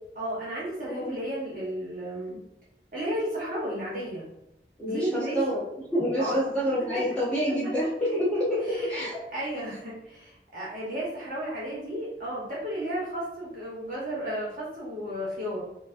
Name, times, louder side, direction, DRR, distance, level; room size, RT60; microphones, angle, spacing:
voice 1, 0.1-2.4 2.9-4.2 4.8-5.4 6.2-6.3 8.1-8.2 8.7-8.9 9.3-15.6, equal, 50° right, -6 dB, 1.1 m, -33 dB
voice 2, 4.8-5.6 5.9-9.2, equal, 10° left, -9 dB, 0.7 m, -27 dB
4.5 x 2.4 x 2.5 m, 0.85 s
head